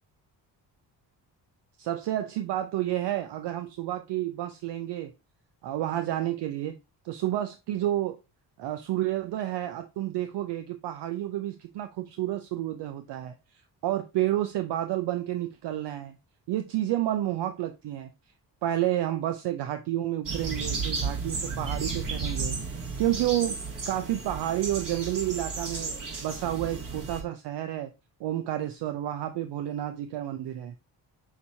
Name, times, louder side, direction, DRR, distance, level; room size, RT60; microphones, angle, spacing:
voice 1, 1.8-5.1 5.6-6.8 7.0-8.2 8.6-13.4 13.8-16.2 16.5-18.1 18.6-23.6 23.9-27.9 28.2-30.8, right 13 dB, 70° right, 0.5 m, -30 dB
sound 1, 20.2-27.2, right 4 dB, 45° right, 2.0 m, -33 dB
5.9 x 2.7 x 2.7 m
cardioid pair, 75°, 44 cm